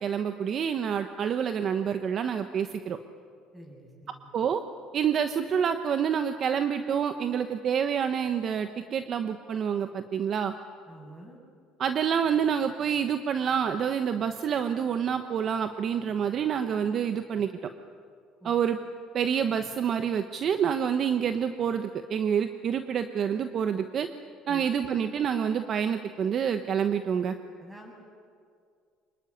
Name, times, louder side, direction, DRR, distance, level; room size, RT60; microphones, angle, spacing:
voice 1, 0.0-3.0 4.3-4.6 4.9-10.5 11.8-17.5 18.4-18.8 19.1-24.1 24.5-27.3, right 8 dB, 45° right, 8 dB, 1.1 m, -27 dB
voice 2, 3.5-4.3 10.9-11.4 18.4-18.5 24.5-24.7 27.6-27.9, right 1 dB, 10° right, 1 dB, 7.5 m, -47 dB
25.5 x 21.5 x 9.7 m, 2.2 s
cardioid pair, 115°, 0 cm